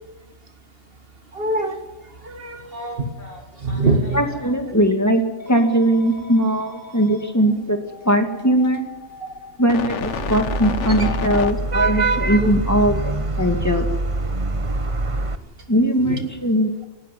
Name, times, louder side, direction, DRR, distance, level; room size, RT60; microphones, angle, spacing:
voice 1, 1.3-1.8 2.2-3.1 3.6-4.2 9.2-9.3 12.4-12.5 16.1-16.2, right 2 dB, 50° right, 5 dB, 2.2 m, -23 dB
Telephone, 2.6-4.5 5.4-7.3 8.6-8.8 10.3-10.5, equal, 45° left, 5.7 m, -40 dB
voice 2, 4.1-5.2 5.5-7.8 8.0-8.8 9.6-13.9 15.7-16.9, right 1 dB, 15° left, 4 dB, 2.4 m, -20 dB
sound 1, 7.7-11.5, left 7 dB, 70° left, 1.2 m, -30 dB
Vehicle horn car horn honking / Traffic noise roadway noise, 10.0-15.4, right 3 dB, 30° right, 1.0 m, -24 dB
19.0 x 15.0 x 9.4 m, 1.2 s
omnidirectional pair, 1.3 m